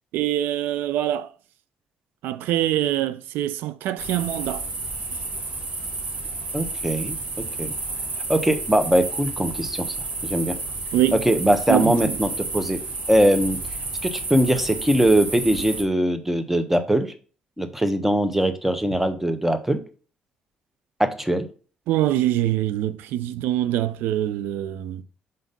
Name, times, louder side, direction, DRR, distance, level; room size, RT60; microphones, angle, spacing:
voice 1, 0.1-1.3 2.2-4.6 10.9-11.2 11.7-12.2 21.9-25.0, right 13 dB, 75° right, 0.5 m, -24 dB
sound 1, 4.0-15.8, right 3 dB, 45° right, 1.6 m, -31 dB
voice 2, 6.5-7.1 7.6-7.7 8.3-9.9 10.2-10.5 11.2-12.8 13.1-13.6 14.0-17.1 17.6-19.8 21.0-21.5, right 1 dB, 5° right, 1.2 m, -21 dB
5.5 x 3.9 x 5.3 m
hypercardioid pair, 50°, 3 cm